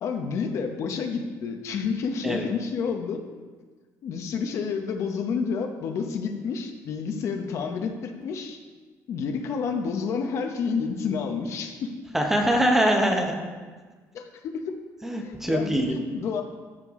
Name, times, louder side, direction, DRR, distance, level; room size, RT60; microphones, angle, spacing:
voice 1, 0.0-3.2 4.0-8.6 9.1-11.9 14.1-14.8 15.1-16.4, left 5 dB, 50° left, 5 dB, 0.8 m, -29 dB
voice 2, 12.1-13.4 15.0-16.0, equal, 5° right, 2 dB, 0.9 m, -23 dB
13.5 x 6.7 x 3.7 m, 1.4 s
cardioid pair, 165°, 6 cm